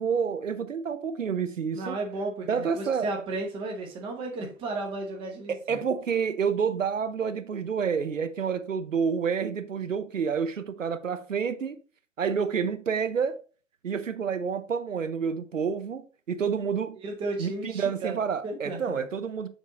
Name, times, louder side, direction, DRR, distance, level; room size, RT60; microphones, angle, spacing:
voice 1, 0.0-2.0 2.5-3.1 5.5-11.8 12.2-13.4 13.8-17.0 17.4-19.5, right 6 dB, 75° right, 0.8 m, -29 dB
voice 2, 1.7-5.8 17.0-19.0, right 2 dB, 15° right, 1.0 m, -34 dB
7.2 x 3.6 x 4.0 m
figure-of-eight pair, 130°, 38 cm